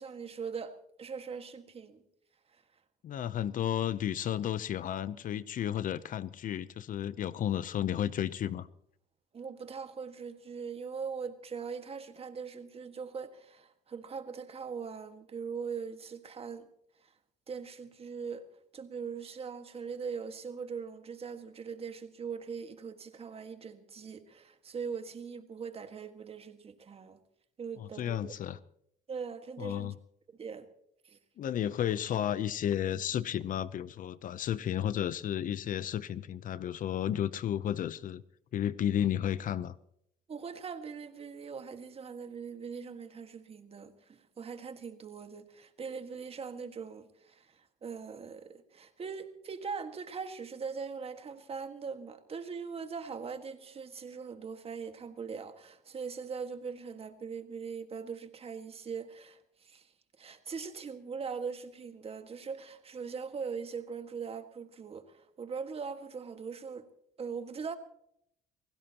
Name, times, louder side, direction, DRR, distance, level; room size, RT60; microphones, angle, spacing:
voice 1, 0.0-2.0 2.5-2.6 9.3-16.7 17.5-18.5 18.7-27.2 27.6-28.3 29.1-29.9 30.4-30.7 31.0-31.2 40.3-59.9 60.2-66.9 67.2-67.8, right 5 dB, 35° right, 1.7 m, -41 dB
voice 2, 3.0-8.7 27.8-28.6 29.6-29.9 31.4-38.2 38.5-39.8, left 10 dB, 50° left, 0.7 m, -32 dB
29.5 x 16.0 x 3.0 m
cardioid pair, 110°, 17 cm